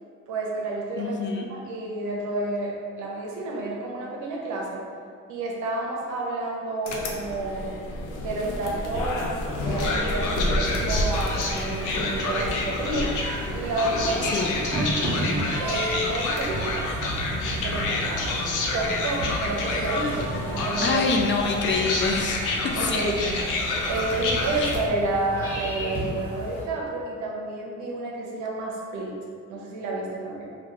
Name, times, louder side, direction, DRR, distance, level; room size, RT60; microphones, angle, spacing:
voice 1, 0.3-4.8 5.3-7.7 8.2-13.1 13.5-14.9 15.6-16.9 17.6-18.3 18.7-21.0 21.4-21.7 22.8-29.1 29.5-30.5, right 2 dB, 80° right, -2 dB, 0.7 m, -30 dB
voice 2, 1.0-1.4 14.2-14.6 20.8-23.0 24.5-24.7, left 4 dB, 40° left, 2 dB, 0.4 m, -26 dB
sound 1, 6.9-24.9, left 2 dB, 85° left, 0.6 m, -28 dB
sound 2, 10.4-26.6, equal, 5° left, 1.3 m, -35 dB
sound 3, 10.9-21.0, right 1 dB, 25° right, 0.8 m, -37 dB
3.1 x 2.3 x 3.7 m, 2.2 s
cardioid pair, 90°, 30 cm